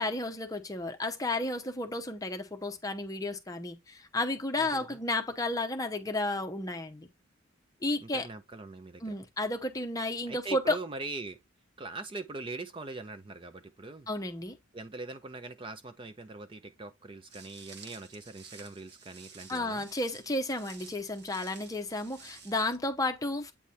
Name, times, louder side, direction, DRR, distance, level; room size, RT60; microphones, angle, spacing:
voice 1, 0.0-7.1 7.8-8.3 9.0-10.8 14.1-14.6 19.5-23.5, left 2 dB, 15° left, 0.8 m, -32 dB
voice 2, 4.6-5.0 8.0-9.2 10.3-11.4 11.8-14.1 14.7-19.9, right 3 dB, 25° right, 0.4 m, -42 dB
Walk footsteps, 17.3-22.8, right 5 dB, 50° right, 1.3 m, -52 dB
8.5 x 3.3 x 4.2 m
head